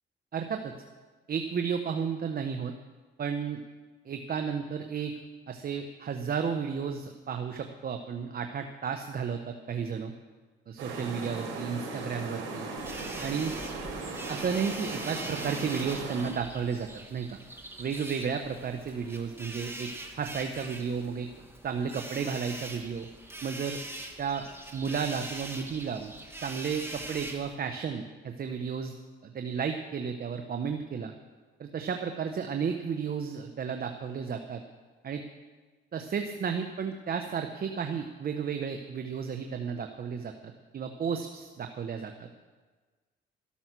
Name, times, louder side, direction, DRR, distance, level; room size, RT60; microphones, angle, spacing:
voice 1, 0.3-0.7 1.3-2.7 3.2-3.6 4.0-5.1 5.5-10.1 10.7-12.7 12.9-13.5 14.3-17.4 17.8-19.9 20.2-21.3 21.6-23.1 23.4-23.8 24.2-24.5 24.7-26.1 26.4-28.9 29.2-31.1 31.6-34.6 35.0-35.2 35.9-42.3, right 6 dB, 50° right, 6 dB, 1.1 m, -33 dB
sound 1, 10.8-16.3, right 3 dB, 85° right, 4.1 m, -38 dB
sound 2, 12.8-27.5, right 1 dB, 10° right, 2.0 m, -42 dB
13.5 x 13.0 x 6.1 m, 1.3 s
cardioid pair, 90°, 20 cm